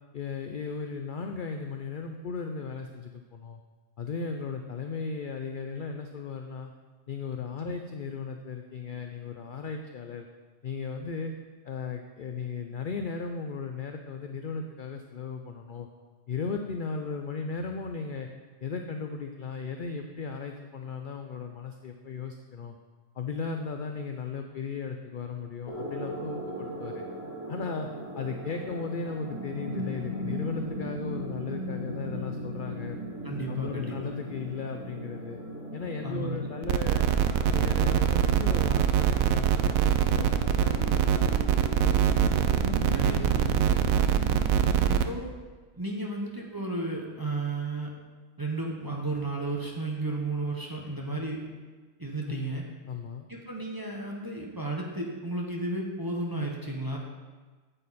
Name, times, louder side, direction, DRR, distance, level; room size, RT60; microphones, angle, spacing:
voice 1, 0.1-3.6 4.0-6.7 7.1-10.3 10.6-11.3 11.6-15.9 16.3-18.3 18.6-22.8 23.1-27.0 27.5-27.9 28.1-33.0 33.5-35.4 35.7-37.1 37.4-41.2 52.3-52.5 52.9-53.2, left 5 dB, 55° left, 4 dB, 0.5 m, -36 dB
sound 1, 25.7-45.0, equal, 80° left, 2.6 m, -38 dB
voice 2, 33.2-34.0 36.0-36.4 42.9-43.6 44.9-45.3 45.8-47.9 48.4-51.4 52.0-52.6 53.3-57.0, right 2 dB, 15° right, -1 dB, 1.0 m, -33 dB
sound 2, 36.6-45.0, right 9 dB, 75° right, 1.0 m, -24 dB
9.0 x 8.4 x 4.2 m, 1.4 s
omnidirectional pair, 1.5 m